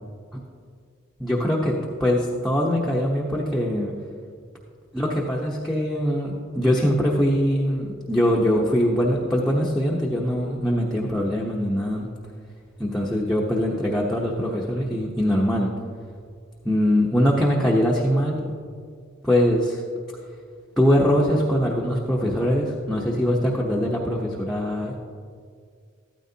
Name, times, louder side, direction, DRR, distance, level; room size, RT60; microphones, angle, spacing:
voice 1, 1.2-3.9 4.9-12.1 12.8-15.7 16.6-18.6 19.2-19.8 20.8-25.0, equal, ahead, -4 dB, 0.9 m, -22 dB
14.5 x 13.0 x 2.8 m, 2.1 s
head